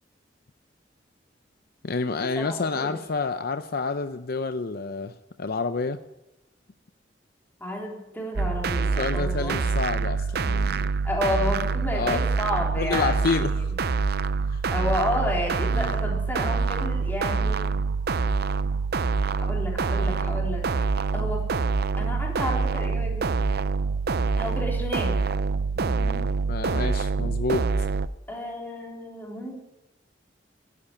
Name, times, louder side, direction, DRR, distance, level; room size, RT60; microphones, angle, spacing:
voice 1, 1.8-6.0 9.0-10.9 11.9-12.2 12.8-13.7 14.5-14.6 15.7-15.9 25.8-27.7, left 4 dB, 55° left, 10 dB, 0.6 m, -29 dB
voice 2, 2.4-2.9 7.6-9.6 11.0-13.5 14.7-17.7 19.4-20.7 21.1-21.5 22.0-23.3 24.4-25.1 28.3-29.5, left 1 dB, 10° left, -1 dB, 3.8 m, -31 dB
sound 1, 8.4-28.1, right 4 dB, 60° right, 0.6 m, -26 dB
12.0 x 11.0 x 9.9 m, 0.98 s
head